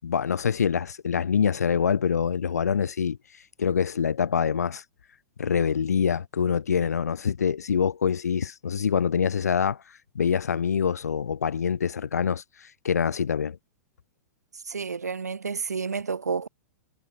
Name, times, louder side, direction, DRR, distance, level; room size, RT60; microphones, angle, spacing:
voice 1, 0.0-3.2 3.6-4.8 5.4-9.8 10.2-13.6, left 7 dB, 75° left, 7.1 m, -25 dB
voice 2, 14.7-16.5, right 5 dB, 80° right, 6.3 m, -30 dB
figure-of-eight pair, 105°, 9 cm